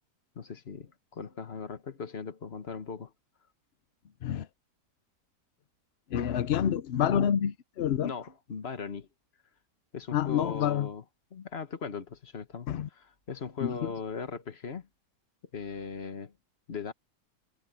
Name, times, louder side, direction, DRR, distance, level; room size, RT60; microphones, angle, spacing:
voice 1, 0.3-3.1 8.0-9.1 9.9-11.0 11.3-14.9 15.5-16.3 16.7-16.9, left 5 dB, 40° left, 1.4 m, -39 dB
voice 2, 6.1-8.1 10.1-10.9 12.7-12.9 13.6-13.9, left 9 dB, 60° left, 0.6 m, -28 dB
omnidirectional pair, 1.8 m